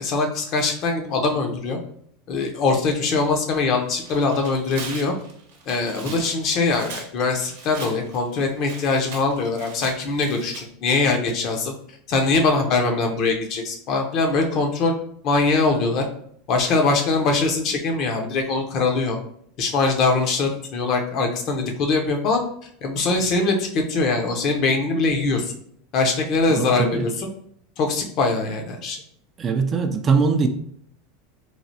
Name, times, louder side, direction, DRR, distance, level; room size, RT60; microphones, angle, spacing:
voice 1, 0.0-1.8 2.3-5.1 5.7-11.7 12.1-14.9 15.2-16.1 16.5-19.2 19.6-22.4 22.8-25.5 25.9-27.3 27.8-29.0, left 3 dB, 50° left, 3 dB, 0.6 m, -22 dB
Tearing, 3.7-10.6, right 4 dB, 75° right, 0.7 m, -40 dB
voice 2, 26.6-27.1 29.4-30.5, right 5 dB, 35° right, 6 dB, 0.4 m, -21 dB
3.2 x 2.3 x 2.7 m, 0.65 s
hypercardioid pair, 95°, 0 cm